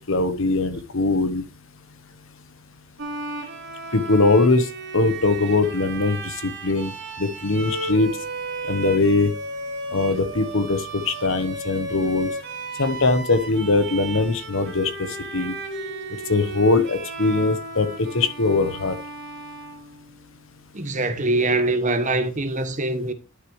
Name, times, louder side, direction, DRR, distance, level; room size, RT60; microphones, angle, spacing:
voice 1, 0.0-1.4 3.9-4.7 4.9-6.9 7.2-8.1 8.7-9.3 9.9-12.3 12.8-15.1 15.3-15.5 16.3-17.9 18.1-19.0, left 3 dB, 60° left, 1.1 m, -21 dB
Bowed string instrument, 3.0-20.4, right 2 dB, 55° right, 2.5 m, -34 dB
voice 2, 20.7-23.1, right 2 dB, 35° right, 1.2 m, -23 dB
11.0 x 6.7 x 3.1 m
head